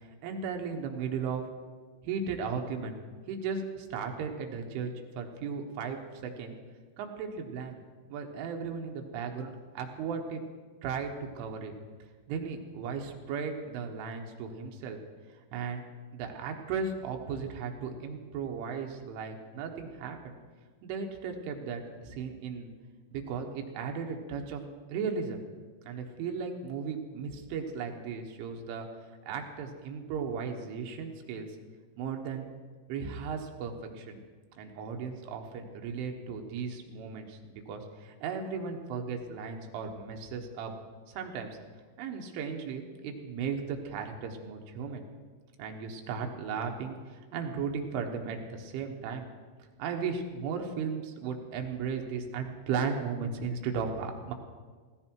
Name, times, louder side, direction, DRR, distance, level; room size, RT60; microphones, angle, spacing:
voice 1, 0.2-1.4 2.0-3.0 3.3-6.6 7.0-7.8 8.1-10.4 10.8-11.7 12.3-15.0 15.5-15.8 16.1-20.3 20.8-22.7 23.1-25.4 25.8-28.9 29.3-31.5 32.0-32.5 32.9-34.2 34.6-40.7 41.1-41.5 42.0-45.0 45.6-47.0 47.3-49.3 49.8-54.3, right 5 dB, 90° right, 3 dB, 3.9 m, -36 dB
17.0 x 16.0 x 4.6 m, 1.5 s
omnidirectional pair, 5.4 m